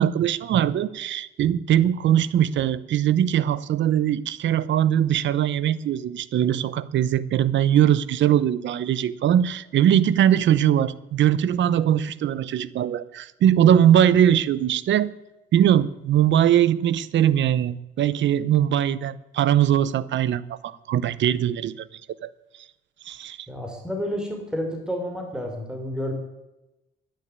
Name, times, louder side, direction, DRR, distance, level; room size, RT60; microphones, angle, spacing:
voice 1, 0.0-15.1 15.5-21.8 22.2-22.3 23.1-23.4, right 10 dB, 70° right, 18 dB, 0.8 m, -21 dB
voice 2, 23.5-26.1, equal, 5° right, 2 dB, 4.1 m, -30 dB
12.0 x 10.5 x 9.4 m, 0.96 s
cardioid pair, 90°, 20 cm